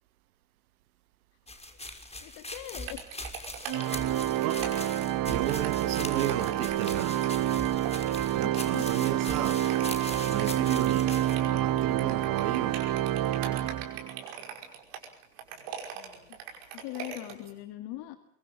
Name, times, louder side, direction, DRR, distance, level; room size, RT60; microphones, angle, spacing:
sound 1, 1.5-11.4, left 2 dB, 15° left, 5.8 m, -41 dB
voice 1, 2.2-3.0 8.4-8.9 15.9-16.4 16.7-18.2, left 15 dB, 65° left, 1.9 m, -41 dB
sound 2, 2.9-17.5, right 8 dB, 70° right, 5.6 m, -41 dB
Organ, 3.7-14.3, right 12 dB, 50° right, 1.2 m, -28 dB
voice 2, 5.3-7.2 8.3-9.6 10.3-11.1 11.5-12.8, right 13 dB, 85° right, 1.0 m, -34 dB
24.0 x 24.0 x 7.1 m
hypercardioid pair, 55°, 43 cm